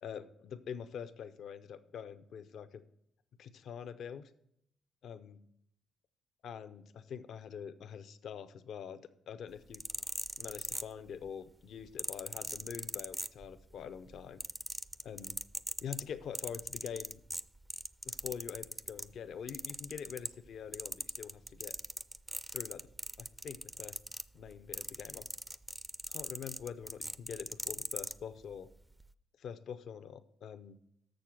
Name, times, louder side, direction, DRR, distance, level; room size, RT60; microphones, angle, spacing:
voice 1, 0.0-2.8 3.4-4.3 5.0-5.4 6.4-9.8 10.4-14.4 15.0-15.4 15.8-17.2 18.0-21.8 22.5-22.9 23.2-24.0 24.3-25.2 26.1-28.7 29.4-30.8, left 7 dB, 70° left, 12 dB, 0.5 m, -45 dB
sound 1, 9.6-11.3 12.0-13.7 14.1-19.1 19.5-20.5 20.7-28.2 28.9-29.1, right 1 dB, 10° right, 0.3 m, -40 dB
6.8 x 6.4 x 5.8 m, 0.73 s
cardioid pair, 90°, 0 cm